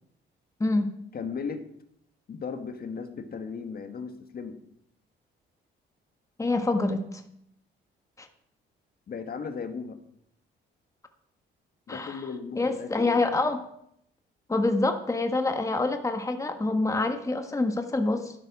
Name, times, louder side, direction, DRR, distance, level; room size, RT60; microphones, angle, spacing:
voice 1, 1.1-1.6 2.3-4.6 9.1-10.0 11.9-13.2, left 5 dB, 50° left, 7 dB, 1.8 m, -36 dB
voice 2, 6.4-7.2 8.2-8.3 11.9-12.2 12.6-13.6 14.5-18.3, left 2 dB, 15° left, 6 dB, 1.4 m, -26 dB
12.5 x 10.5 x 6.0 m, 0.72 s
cardioid pair, 90°, 20 cm